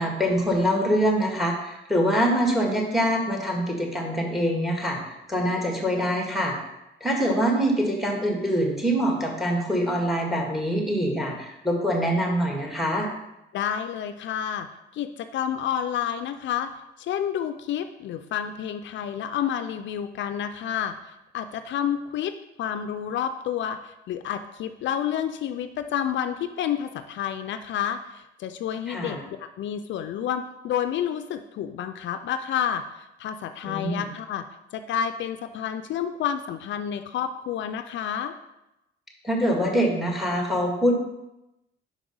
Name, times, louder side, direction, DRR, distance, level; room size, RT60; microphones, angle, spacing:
voice 1, 0.0-5.0 5.3-6.5 7.0-13.1 28.9-29.2 33.6-34.0 39.2-41.0, equal, ahead, 0 dB, 1.8 m, -24 dB
voice 2, 13.5-14.7 14.9-16.7 17.0-20.9 21.3-34.4 34.7-38.4, left 9 dB, 70° left, 9 dB, 0.4 m, -29 dB
5.2 x 4.9 x 5.4 m, 0.92 s
cardioid pair, 90°, 20 cm